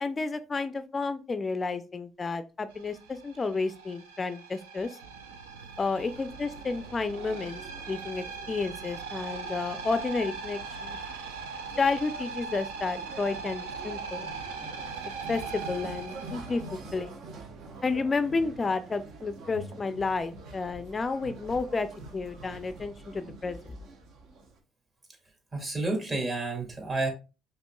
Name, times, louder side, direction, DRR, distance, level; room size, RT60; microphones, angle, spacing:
voice 1, 0.0-5.0 5.8-7.6 7.9-11.0 11.8-14.3 15.3-16.6 16.9-17.2 17.8-23.8, left 4 dB, 30° left, 12 dB, 0.4 m, -31 dB
sound 1, 2.7-17.3, right 4 dB, 85° right, 0.5 m, -40 dB
sound 2, 6.1-24.6, right 2 dB, 65° right, 0.9 m, -47 dB
voice 2, 25.5-27.1, right 2 dB, 35° right, 1 dB, 1.9 m, -30 dB
5.1 x 2.9 x 2.2 m, 0.30 s
hypercardioid pair, 60°, 0 cm